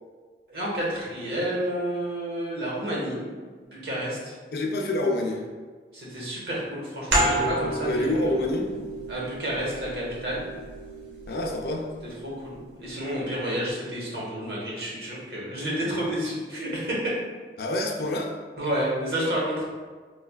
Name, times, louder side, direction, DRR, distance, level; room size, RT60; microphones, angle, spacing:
voice 1, 0.5-3.2 3.7-4.3 5.9-8.3 9.1-10.4 12.2-17.0 18.6-19.6, equal, 65° right, -5 dB, 1.0 m, -30 dB
voice 2, 4.5-5.4 7.9-8.7 11.3-11.9 17.6-18.3, left 1 dB, 60° left, 1 dB, 0.4 m, -27 dB
sound 1, 7.1-12.4, right 1 dB, 90° right, 0.8 m, -30 dB
4.5 x 2.3 x 2.2 m, 1.5 s
head